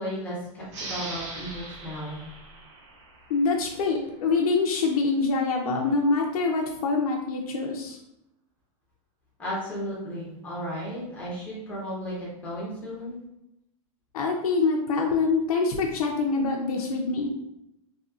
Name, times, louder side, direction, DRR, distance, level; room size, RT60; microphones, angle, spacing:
voice 1, 0.0-2.2 9.4-13.2, equal, 10° left, -6 dB, 0.7 m, -34 dB
sound 1, 0.7-3.9, right 2 dB, 50° right, 0.7 m, -40 dB
voice 2, 3.3-8.0 14.1-17.3, left 4 dB, 85° left, 0 dB, 0.5 m, -25 dB
2.7 x 2.5 x 2.4 m, 0.84 s
supercardioid pair, 175°, 18 cm